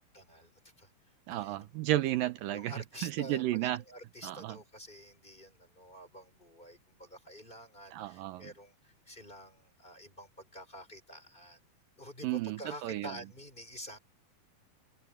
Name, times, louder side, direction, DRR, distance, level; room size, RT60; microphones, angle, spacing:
voice 1, 0.1-0.5 0.8-0.9 1.3-1.6 2.5-11.6 12.0-14.0, equal, 15° left, 4.9 m, -48 dB
voice 2, 1.3-2.7 3.0-3.8 4.2-4.6 7.9-8.5 12.2-13.1, right 15 dB, 80° right, 2.4 m, -33 dB
omnidirectional pair, 4.1 m